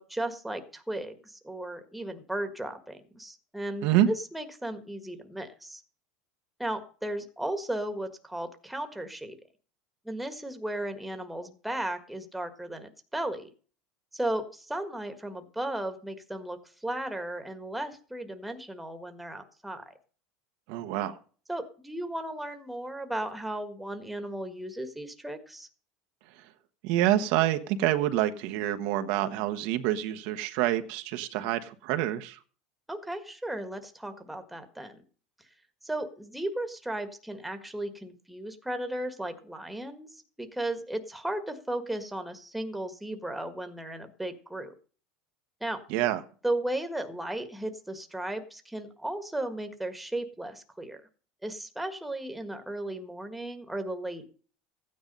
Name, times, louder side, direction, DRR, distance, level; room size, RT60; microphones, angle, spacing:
voice 1, 0.0-5.8 6.6-9.4 10.0-13.5 14.1-19.9 21.5-25.7 32.9-35.0 35.8-44.7 45.6-45.8 46.4-51.0 51.4-54.3, right 1 dB, 5° right, 7 dB, 1.6 m, -35 dB
voice 2, 20.7-21.2 26.8-32.4 45.9-46.2, right 13 dB, 65° right, 8 dB, 1.2 m, -27 dB
15.0 x 9.7 x 5.4 m, 0.41 s
supercardioid pair, 145°, 2 cm